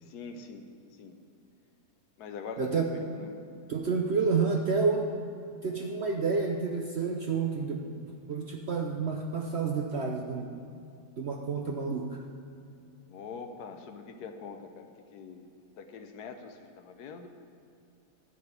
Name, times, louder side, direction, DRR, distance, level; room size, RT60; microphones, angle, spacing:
voice 1, 0.0-1.2 2.2-3.4 13.1-17.3, left 5 dB, 75° left, 7 dB, 1.3 m, -43 dB
voice 2, 2.6-2.9 3.7-5.1 5.6-10.5 11.2-12.2, right 5 dB, 55° right, 2 dB, 0.7 m, -29 dB
11.0 x 5.3 x 8.1 m, 2.5 s
omnidirectional pair, 1.8 m